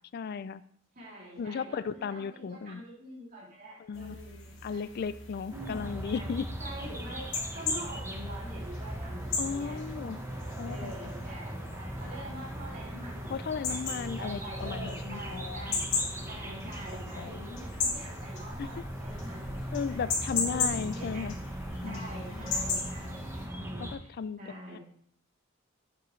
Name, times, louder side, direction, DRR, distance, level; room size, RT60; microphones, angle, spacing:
voice 1, 0.1-0.6 1.4-2.8 3.8-4.2 4.6-6.5 9.4-10.2 10.6-11.0 13.3-15.8 17.0-17.4 18.6-18.7 19.7-21.3 21.8-22.5 23.8-24.4 24.7-24.8, left 6 dB, 50° left, 16 dB, 0.3 m, -36 dB
voice 2, 0.9-4.9 5.5-6.3 6.6-10.2 10.6-13.3 13.6-13.8 14.2-15.8 16.2-19.9 20.3-21.3 21.8-24.1 24.4-24.8, right 1 dB, 45° right, -6 dB, 3.0 m, -45 dB
sound 1, 3.9-23.5, left 4 dB, 65° left, 2.0 m, -38 dB
sound 2, 5.5-24.0, equal, 10° right, 0.8 m, -39 dB
7.8 x 7.8 x 3.2 m, 0.65 s
head